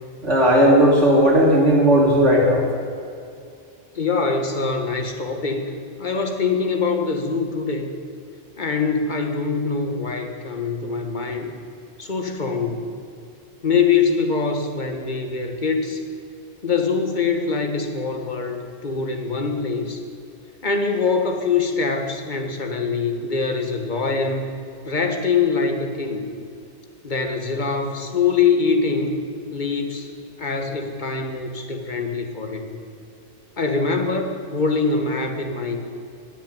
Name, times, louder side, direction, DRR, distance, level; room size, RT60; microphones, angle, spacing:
voice 1, 0.2-2.6, equal, 90° right, -4 dB, 3.1 m, -15 dB
voice 2, 3.9-5.7 6.0-7.9 8.6-11.5 12.0-12.8 13.6-16.0 16.6-20.0 20.6-24.5 24.9-26.2 27.0-29.2 29.5-30.1 30.4-32.6 33.6-35.8, left 5 dB, 40° left, 4 dB, 1.6 m, -23 dB
19.0 x 7.2 x 9.1 m, 2.4 s
omnidirectional pair, 1.2 m